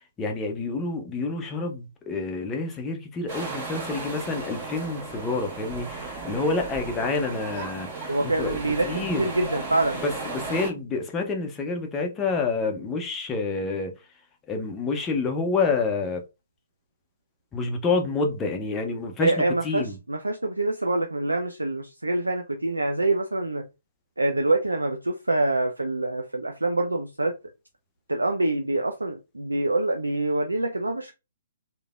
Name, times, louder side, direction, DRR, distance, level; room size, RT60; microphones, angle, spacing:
voice 1, 0.2-8.6 8.8-9.3 10.0-13.9 14.5-16.2 17.5-20.0, left 3 dB, 15° left, 0.5 m, -28 dB
sound 1, 3.3-10.7, right 3 dB, 30° right, 1.1 m, -35 dB
voice 2, 8.1-10.0 19.2-23.6 24.2-27.3 28.1-31.1, right 2 dB, 80° right, 0.3 m, -25 dB
3.2 x 2.2 x 2.3 m
figure-of-eight pair, 125°, 0 cm